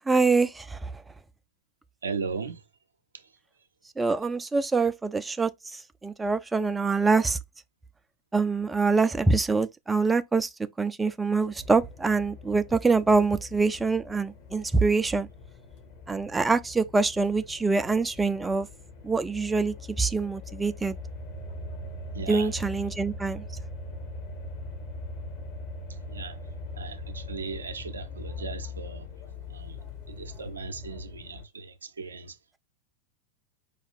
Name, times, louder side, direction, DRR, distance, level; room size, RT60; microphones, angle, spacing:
voice 1, 0.1-0.9 4.0-7.4 8.3-10.5 10.8-15.3 16.1-18.7 19.0-21.0 22.2-23.4, right 4 dB, 10° right, 0.3 m, -25 dB
voice 2, 2.0-2.6 3.1-3.3 22.1-22.5 25.9-26.4 26.7-29.1 29.5-29.8 30.1-32.4, right 4 dB, 75° right, 0.5 m, -37 dB
sound 1, 11.6-31.5, left 2 dB, 50° left, 1.2 m, -41 dB
5.0 x 2.3 x 3.3 m
figure-of-eight pair, 90°, 0 cm